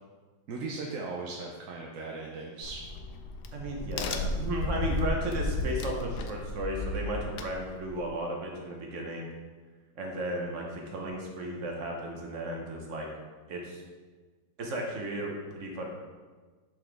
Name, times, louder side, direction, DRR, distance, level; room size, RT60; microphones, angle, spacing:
voice 1, 0.5-2.8, right 3 dB, 65° right, -1 dB, 0.8 m, -38 dB
Crack, 2.6-8.1, left 2 dB, 75° left, 1.1 m, -34 dB
voice 2, 3.5-9.3 9.9-13.1 13.5-13.8 14.6-15.9, right 1 dB, 50° right, 0 dB, 1.2 m, -34 dB
6.1 x 5.7 x 3.4 m, 1.4 s
omnidirectional pair, 1.9 m